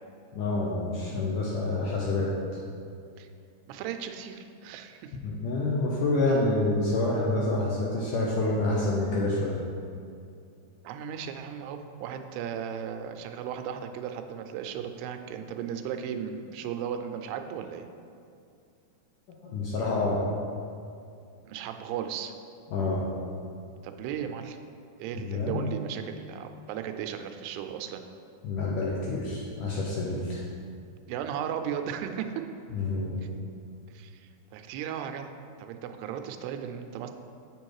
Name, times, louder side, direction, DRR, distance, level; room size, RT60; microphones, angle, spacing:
voice 1, 0.3-2.4 5.2-9.6 19.3-20.3 22.7-23.1 25.3-25.8 28.4-30.4 32.7-33.3, left 2 dB, 75° left, -4 dB, 1.9 m, -28 dB
voice 2, 3.7-5.2 10.8-17.9 21.4-22.3 23.8-24.6 25.0-28.0 31.1-32.3 33.9-35.3 35.6-37.1, right 8 dB, 85° right, 7 dB, 2.6 m, -36 dB
7.6 x 6.9 x 4.7 m, 2.4 s
omnidirectional pair, 4.7 m